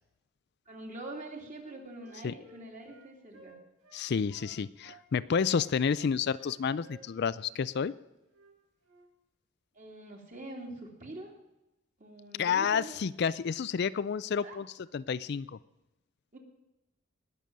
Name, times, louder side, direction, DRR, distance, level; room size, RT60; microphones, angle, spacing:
voice 1, 0.7-3.6 9.7-11.3 12.0-12.9 14.4-14.6 16.3-16.4, right 2 dB, 40° right, 1 dB, 3.0 m, -44 dB
Wind instrument woodwind instrument, 1.5-5.0 5.4-7.5 7.8-8.0 8.3-8.5 8.8-9.1, right 3 dB, 85° right, 4.5 m, -57 dB
voice 2, 3.9-7.9 12.4-14.7 14.9-15.6, left 6 dB, 55° left, 16 dB, 0.4 m, -30 dB
20.0 x 6.9 x 7.4 m, 0.96 s
head